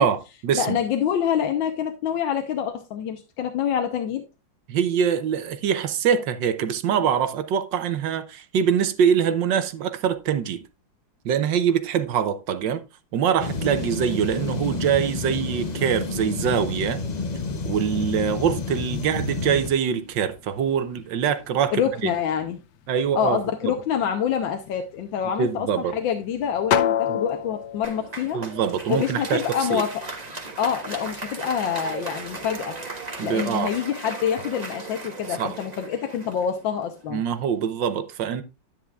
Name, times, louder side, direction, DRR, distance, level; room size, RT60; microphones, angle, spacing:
voice 1, 0.0-0.8 4.7-10.6 11.2-12.8 13.1-17.0 17.6-22.1 22.9-23.8 25.4-25.9 27.1-27.2 28.3-29.4 29.7-29.8 33.2-33.7 35.4-35.6 37.1-38.4, right 8 dB, 75° right, 1.5 m, -24 dB
voice 2, 0.5-4.3 21.7-22.6 23.1-25.7 25.9-28.4 28.9-30.0 30.6-32.8 33.2-37.2, left 8 dB, 90° left, 1.6 m, -26 dB
sound 1, 13.4-19.7, left 3 dB, 45° left, 0.5 m, -30 dB
sound 2, 16.5-33.8, left 9 dB, 70° left, 1.3 m, -35 dB
Applause, 27.8-37.2, right 3 dB, 25° right, 1.3 m, -37 dB
10.5 x 9.2 x 2.4 m
omnidirectional pair, 2.0 m